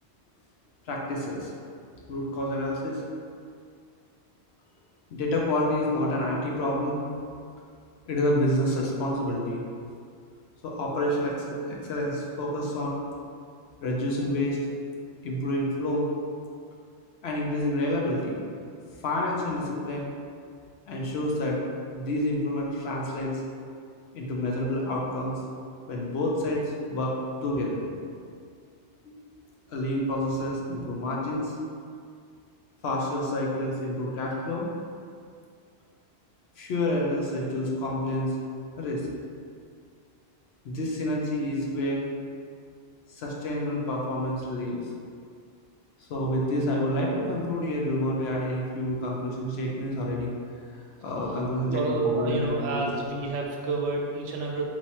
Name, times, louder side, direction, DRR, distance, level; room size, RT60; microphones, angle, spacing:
voice 1, 0.9-1.5 2.1-3.0 5.1-7.0 8.1-9.6 10.6-13.0 13.8-14.6 15.2-16.1 17.2-18.5 19.0-20.1 20.9-21.6 21.9-23.3 24.1-25.4 25.9-27.1 27.4-27.8 29.0-29.1 29.7-31.5 32.8-34.7 36.6-38.3 38.8-39.0 40.6-42.1 43.1-44.8 46.1-50.3 50.7-52.8, left 1 dB, 65° left, -2 dB, 0.9 m, -28 dB
voice 2, 51.7-54.7, right 3 dB, 85° right, -1 dB, 0.9 m, -29 dB
4.5 x 2.9 x 2.8 m, 2.2 s
omnidirectional pair, 1.2 m